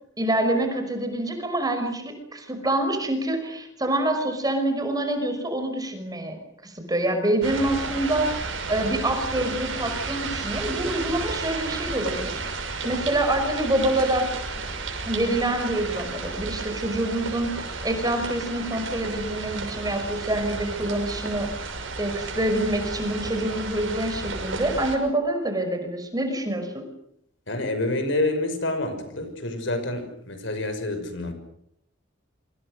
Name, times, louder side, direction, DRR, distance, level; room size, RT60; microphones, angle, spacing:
voice 1, 0.2-6.4 6.6-14.3 15.1-21.5 22.0-26.8, right 1 dB, 20° right, 6 dB, 5.4 m, -26 dB
sound 1, 7.4-25.0, right 3 dB, 75° right, 6.2 m, -33 dB
voice 2, 27.5-31.3, left 2 dB, 65° left, 8 dB, 6.0 m, -28 dB
26.5 x 26.0 x 6.6 m, 0.73 s
head